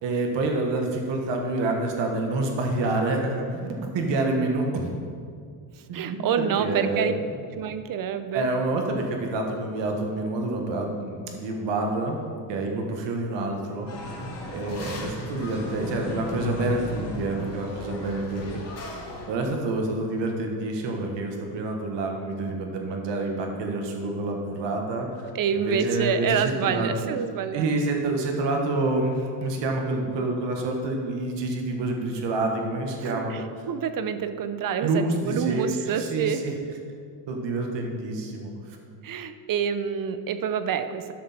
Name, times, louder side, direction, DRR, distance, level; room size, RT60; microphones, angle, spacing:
voice 1, 0.0-3.7 3.9-5.0 5.9-7.2 8.3-12.2 12.5-13.9 14.5-18.6 19.3-26.9 27.5-33.5 34.8-36.5 37.3-38.8, right 2 dB, 70° right, 2 dB, 1.6 m, -28 dB
voice 2, 5.9-7.1 7.5-8.5 25.3-27.7 33.3-36.4 39.0-41.1, right 7 dB, 45° right, 11 dB, 0.7 m, -27 dB
sound 1, 13.9-19.3, left 2 dB, 35° left, 2.2 m, -35 dB
12.0 x 6.3 x 4.3 m, 2.2 s
cardioid pair, 100°, 45 cm